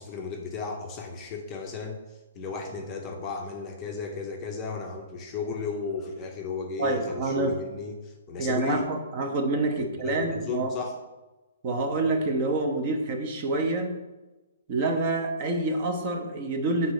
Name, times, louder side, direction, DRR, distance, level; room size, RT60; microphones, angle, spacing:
voice 1, 0.0-2.0 2.3-8.9 9.7-10.9, left 5 dB, 15° left, 2 dB, 0.7 m, -34 dB
voice 2, 6.8-7.5 8.4-10.8 11.6-14.0 14.7-16.9, right 2 dB, 25° right, 4 dB, 0.7 m, -27 dB
7.3 x 4.1 x 6.5 m, 1.1 s
hypercardioid pair, 175°, 0 cm